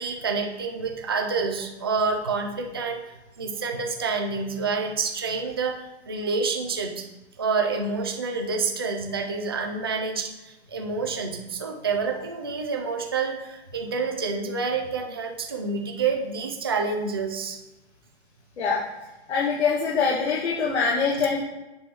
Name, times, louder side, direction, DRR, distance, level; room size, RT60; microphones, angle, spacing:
voice 1, 0.0-7.0 7.4-17.6, right 4 dB, 25° right, 2 dB, 0.3 m, -28 dB
voice 2, 19.3-21.4, left 5 dB, 75° left, -4 dB, 1.5 m, -23 dB
7.5 x 3.4 x 5.7 m, 1.0 s
hypercardioid pair, 170°, 33 cm